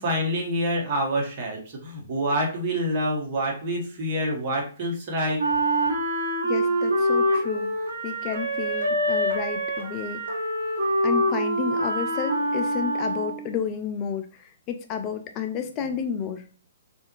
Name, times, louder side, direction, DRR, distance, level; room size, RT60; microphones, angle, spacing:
voice 1, 0.0-5.4, equal, 40° right, -1 dB, 1.1 m, -27 dB
Wind instrument woodwind instrument, 5.4-13.6, equal, 70° right, 1.0 m, -25 dB
voice 2, 6.4-7.7 8.0-10.2 11.0-16.5, left 7 dB, 30° left, 6 dB, 0.3 m, -31 dB
3.3 x 2.4 x 2.9 m, 0.39 s
hypercardioid pair, 135°, 0 cm